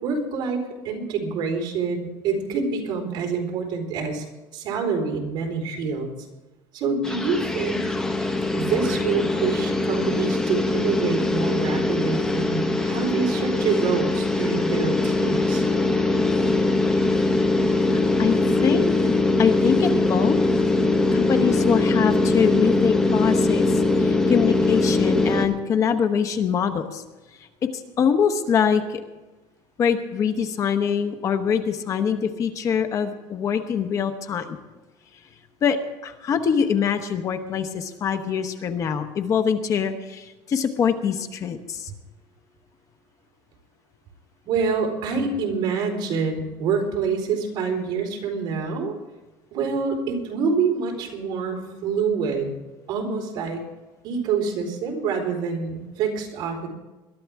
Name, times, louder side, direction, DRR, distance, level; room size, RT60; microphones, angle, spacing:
voice 1, 0.0-4.2 4.5-6.1 6.7-7.9 8.5-15.6 44.5-49.0 49.5-52.6 52.9-53.6 54.0-56.7, right 5 dB, 55° right, 1 dB, 4.1 m, -26 dB
sound 1, 7.0-25.5, left 2 dB, 5° left, 1.4 m, -22 dB
voice 2, 17.8-18.4 18.6-18.8 19.4-20.4 21.1-27.0 27.6-29.0 29.8-34.6 35.6-35.8 36.0-41.9, left 7 dB, 35° left, 8 dB, 1.0 m, -24 dB
Bowed string instrument, 20.6-24.7, right 5 dB, 30° right, 1.3 m, -40 dB
21.5 x 12.5 x 3.6 m, 1.1 s
cardioid pair, 155°, 9 cm